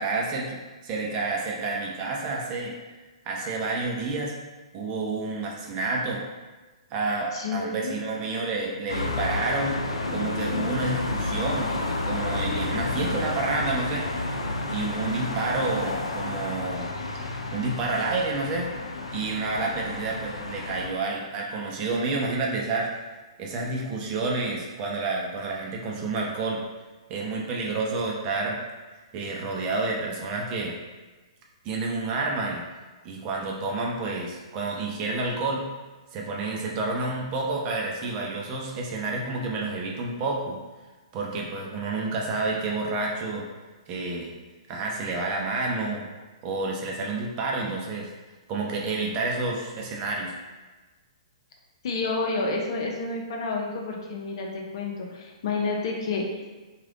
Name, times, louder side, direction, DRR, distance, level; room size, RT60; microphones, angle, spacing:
voice 1, 0.0-2.7 3.2-4.3 4.7-6.2 6.9-9.8 10.1-14.1 14.7-16.9 17.5-18.7 19.1-23.0 23.4-26.6 27.1-28.6 29.1-30.8 31.6-32.6 33.0-35.6 36.1-40.6 41.1-43.5 43.9-44.3 44.7-46.1 46.4-48.1 48.5-50.3, right 3 dB, 30° right, -1 dB, 0.6 m, -29 dB
voice 2, 7.3-8.0 51.8-56.4, left 3 dB, 55° left, 0 dB, 0.7 m, -29 dB
sound 1, 8.9-20.9, left 2 dB, 80° left, 0.4 m, -30 dB
3.2 x 2.4 x 3.6 m, 1.3 s
figure-of-eight pair, 120°, 3 cm